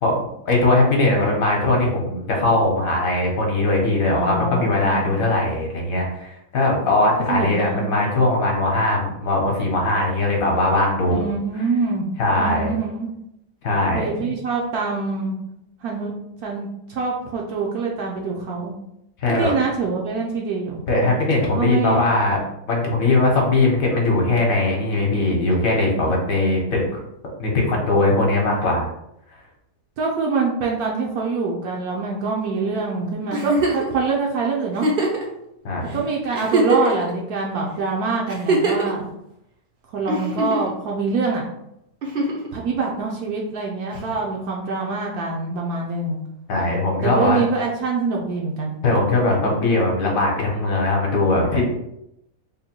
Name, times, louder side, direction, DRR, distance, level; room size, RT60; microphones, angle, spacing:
voice 1, 0.0-11.2 12.2-12.8 13.6-14.3 19.2-19.5 20.9-22.4 22.7-26.8 27.4-28.9 35.6-35.8 46.5-47.4 48.8-51.6, left 2 dB, 60° left, -1 dB, 1.2 m, -20 dB
voice 2, 4.1-5.2 7.3-8.0 11.1-13.1 13.9-15.3 15.8-16.1 16.4-18.7 19.3-20.8 21.5-22.0 30.0-34.9 35.9-39.1 39.9-41.4 42.5-46.2 47.0-48.8, right 4 dB, 70° right, -1 dB, 1.0 m, -25 dB
Giggle, 33.3-33.9 34.7-35.2 35.9-36.0 36.3-37.1 38.3-38.9 40.1-40.7 42.0-42.5 44.0-44.1, right 2 dB, 55° right, 0.6 m, -21 dB
3.7 x 2.1 x 4.3 m, 0.81 s
omnidirectional pair, 1.8 m